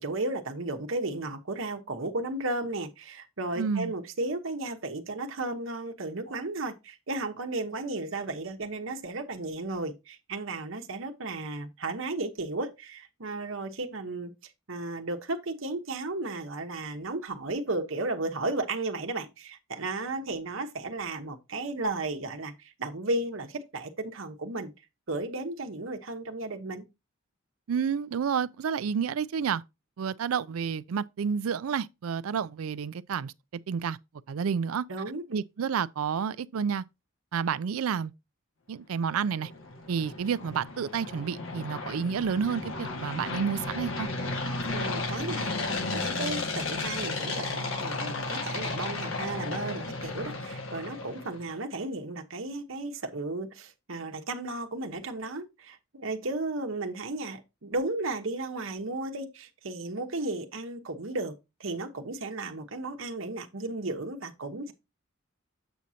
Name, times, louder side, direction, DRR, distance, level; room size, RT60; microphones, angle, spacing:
voice 1, 0.0-14.3 14.7-24.7 25.1-26.8 34.9-35.4 44.7-45.5 45.9-61.3 61.6-64.7, right 2 dB, 70° right, 1.1 m, -34 dB
voice 2, 3.6-3.9 27.7-29.6 30.0-33.3 33.7-34.0 34.3-34.9 35.3-36.8 37.3-38.1 38.7-39.5 39.9-44.1, right 6 dB, 85° right, 0.4 m, -30 dB
sound 1, 39.1-51.4, left 3 dB, 70° left, 1.7 m, -34 dB
8.1 x 6.1 x 2.8 m
head